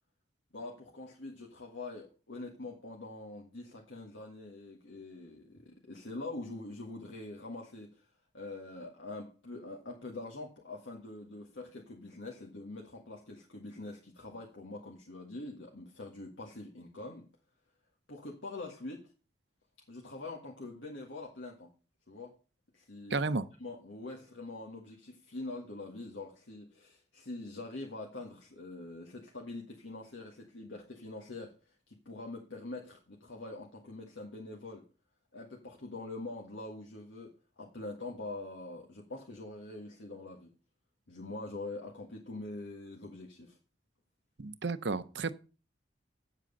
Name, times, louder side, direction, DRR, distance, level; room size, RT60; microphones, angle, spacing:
voice 1, 0.5-8.1 8.3-17.3 18.1-19.1 19.9-21.7 22.1-22.4 22.7-23.2 23.6-34.9 35.3-40.5 41.1-43.6, left 2 dB, 85° left, 1.7 m, -44 dB
voice 2, 23.1-23.4 44.4-45.3, right 3 dB, 65° right, 0.7 m, -32 dB
9.3 x 7.6 x 5.3 m
head